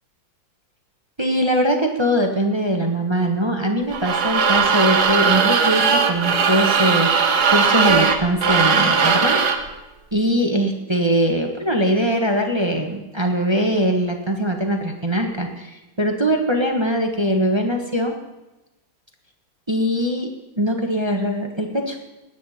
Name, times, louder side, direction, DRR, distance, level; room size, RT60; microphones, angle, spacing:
voice 1, 1.2-9.4 10.1-18.1 19.7-20.3 20.6-22.0, equal, 20° right, 2 dB, 1.0 m, -21 dB
sound 1, 3.9-9.7, right 6 dB, 55° right, 1.6 m, -18 dB
20.5 x 9.8 x 4.3 m, 1.0 s
omnidirectional pair, 2.1 m